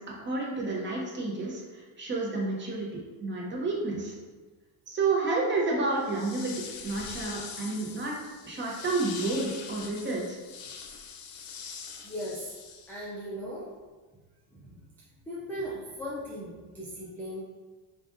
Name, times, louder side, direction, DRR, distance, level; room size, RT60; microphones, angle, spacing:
voice 1, 0.2-4.1 4.9-8.1 8.4-10.4, right 3 dB, 25° right, -3 dB, 0.8 m, -30 dB
sound 1, 5.9-13.2, left 6 dB, 90° left, 0.6 m, -43 dB
voice 2, 12.0-12.5 12.9-13.7 14.5-14.8 15.2-17.4, equal, 5° left, -8 dB, 0.3 m, -38 dB
5.1 x 2.4 x 2.5 m, 1.3 s
cardioid pair, 135°, 48 cm